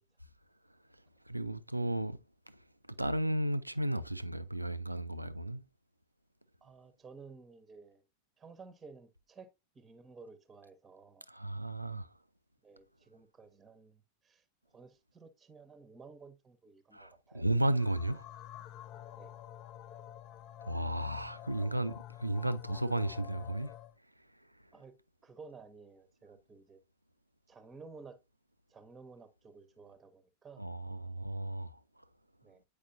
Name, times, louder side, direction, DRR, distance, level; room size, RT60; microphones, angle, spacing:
voice 1, 0.9-5.6 11.3-12.2 16.9-18.3 20.6-23.7 24.2-24.7 30.6-32.0, right 1 dB, 85° right, 0.4 m, -34 dB
voice 2, 6.6-8.0 8.4-11.3 12.6-14.4 14.7-17.4 19.1-19.4 24.7-25.0 25.2-26.8 27.5-28.2 28.7-30.6 32.4-32.6, right 4 dB, 15° right, 0.8 m, -54 dB
sound 1, 17.8-24.0, left 12 dB, 40° left, 0.5 m, -49 dB
8.3 x 4.9 x 2.6 m
figure-of-eight pair, 90°, 0 cm